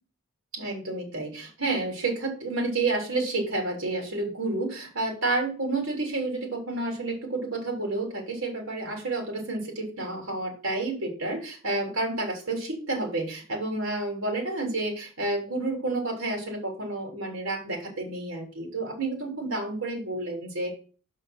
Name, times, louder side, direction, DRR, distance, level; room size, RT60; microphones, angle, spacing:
voice 1, 0.5-20.7, right 2 dB, 75° right, 1 dB, 3.4 m, -30 dB
6.3 x 5.5 x 5.8 m, 0.37 s
head